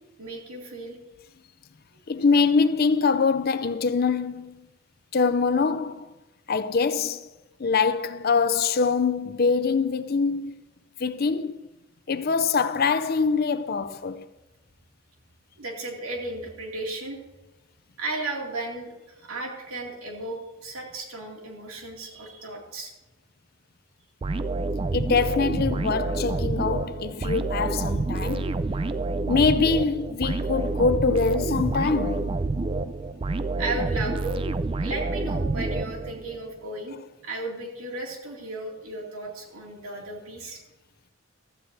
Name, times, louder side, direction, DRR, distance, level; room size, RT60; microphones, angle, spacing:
voice 1, 0.2-1.0 15.6-17.2 18.0-22.9 33.6-34.4 34.8-37.0 37.2-40.6, right 2 dB, 85° right, 2.5 m, -34 dB
voice 2, 2.1-4.6 5.1-6.1 6.5-7.3 7.6-10.6 11.0-11.6 12.1-14.3 24.9-28.6 29.3-32.4, left 5 dB, 45° left, 0.5 m, -24 dB
sound 1, 24.2-36.4, right 3 dB, 25° right, 0.3 m, -28 dB
15.5 x 13.0 x 2.7 m
head